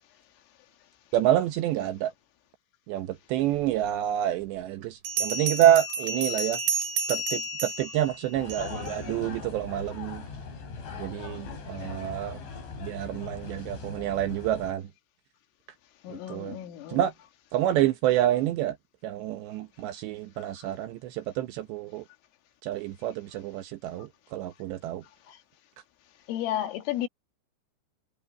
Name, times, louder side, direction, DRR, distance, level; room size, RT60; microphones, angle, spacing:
voice 1, 1.1-2.1 2.9-6.6 7.1-10.3 11.0-12.4 12.8-14.9 16.1-16.6 16.9-17.1 17.5-18.8 19.0-22.0 22.6-25.0, right 12 dB, 75° right, 2.8 m, -28 dB
Bell, 3.8-3.9 5.0-8.9, right 4 dB, 55° right, 5.3 m, -31 dB
sound 1, 8.3-14.7, left 5 dB, 65° left, 8.7 m, -40 dB
voice 2, 16.0-17.0 25.3-25.4 26.3-27.1, left 12 dB, 80° left, 4.4 m, -32 dB
omnidirectional pair, 5.8 m